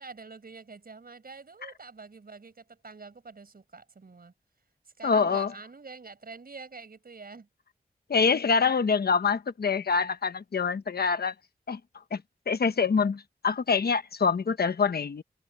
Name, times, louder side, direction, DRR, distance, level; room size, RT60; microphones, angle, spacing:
voice 1, 0.0-4.3 5.0-7.5, right 4 dB, 70° right, 5.1 m, -46 dB
voice 2, 5.0-5.5 8.1-11.3 11.7-11.8 12.1-12.2 12.5-15.2, left 5 dB, 85° left, 1.1 m, -25 dB
wide cardioid pair, 55°, 16 cm